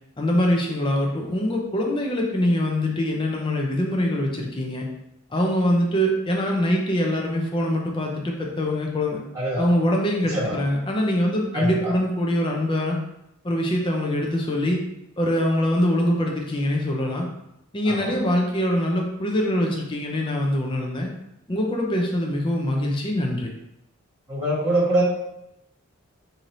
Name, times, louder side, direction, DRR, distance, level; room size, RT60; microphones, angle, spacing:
voice 1, 0.2-4.9 5.3-9.2 9.6-13.0 13.4-14.8 15.2-17.3 17.7-21.1 21.5-23.5, left 1 dB, 25° left, 0 dB, 0.5 m, -23 dB
voice 2, 10.3-10.6 11.5-11.9 17.9-18.1 24.3-25.0, right 1 dB, 15° right, -9 dB, 1.4 m, -24 dB
3.2 x 2.8 x 3.9 m, 0.84 s
head